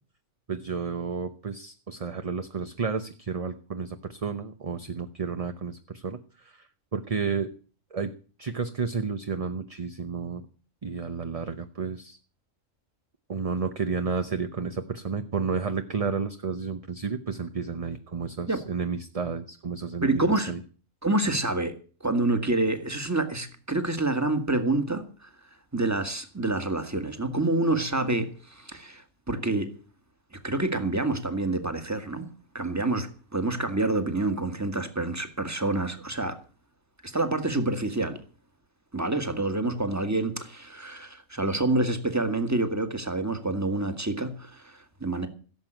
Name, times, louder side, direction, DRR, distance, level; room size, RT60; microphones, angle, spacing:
voice 1, 0.5-7.5 7.9-8.1 8.4-10.5 10.8-12.2 13.3-20.6, right 5 dB, 30° right, 0.8 m, -31 dB
voice 2, 20.0-20.5 21.0-21.7 22.0-25.3 25.7-29.7 30.3-32.3 32.5-36.4 37.0-38.2 38.9-45.3, right 2 dB, 15° right, 1.6 m, -27 dB
16.5 x 7.7 x 8.9 m
omnidirectional pair, 1.3 m